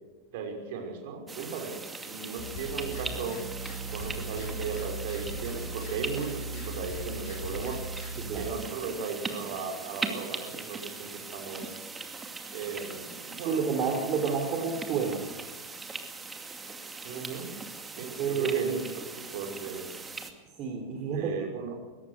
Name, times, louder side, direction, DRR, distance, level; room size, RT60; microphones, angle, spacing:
voice 1, 0.3-3.4 3.9-7.8 8.3-11.8 12.5-14.0 14.2-14.7 17.0-17.5 18.0-18.8 19.2-19.9 21.1-21.8, right 5 dB, 50° right, 3 dB, 5.8 m, -37 dB
sound 1, 1.3-20.3, right 4 dB, 15° right, 2.3 m, -40 dB
sound 2, 2.4-8.5, right 2 dB, 40° left, 7.9 m, -38 dB
voice 2, 13.5-15.2 18.2-18.8 20.6-21.3, right 6 dB, 35° right, 2 dB, 3.6 m, -29 dB
22.5 x 18.5 x 6.6 m, 1.3 s
figure-of-eight pair, 90°, 0 cm